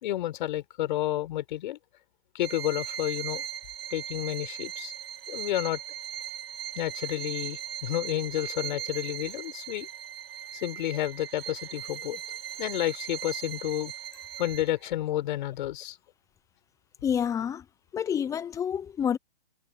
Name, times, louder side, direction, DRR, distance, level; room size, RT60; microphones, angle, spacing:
voice 1, 0.0-1.8 2.3-3.4 3.9-4.9 5.3-5.8 6.7-9.9 10.5-12.2 12.6-13.9 14.4-16.0, left 14 dB, 50° left, 5.0 m, -30 dB
Bowed string instrument, 2.4-14.9, right 10 dB, 65° right, 1.6 m, -39 dB
voice 2, 17.0-17.6 17.9-19.2, left 8 dB, 10° left, 0.7 m, -28 dB
hypercardioid pair, 135°, 32 cm